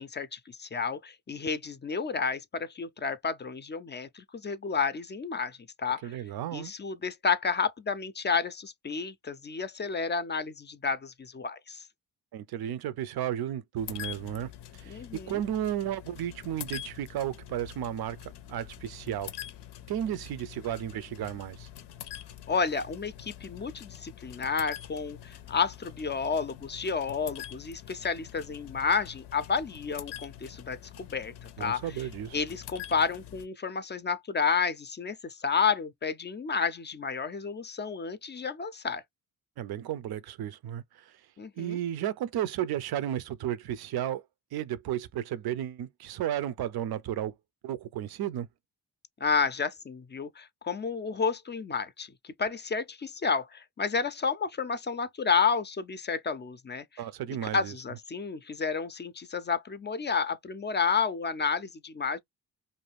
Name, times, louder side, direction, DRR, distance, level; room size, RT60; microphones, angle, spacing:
voice 1, 0.0-6.1 6.5-11.8 14.9-15.4 22.5-32.1 32.3-39.0 41.4-41.8 49.2-56.9 57.5-62.2, left 5 dB, 25° left, 0.4 m, -31 dB
voice 2, 6.0-6.7 12.3-18.2 18.5-19.3 19.9-21.7 31.6-32.4 39.6-41.2 41.6-44.2 44.5-47.3 47.6-48.5 57.0-57.7, right 11 dB, 65° right, 0.5 m, -33 dB
sound 1, 13.8-33.5, left 11 dB, 85° left, 0.5 m, -45 dB
2.6 x 2.3 x 3.2 m
cardioid pair, 60°, 40 cm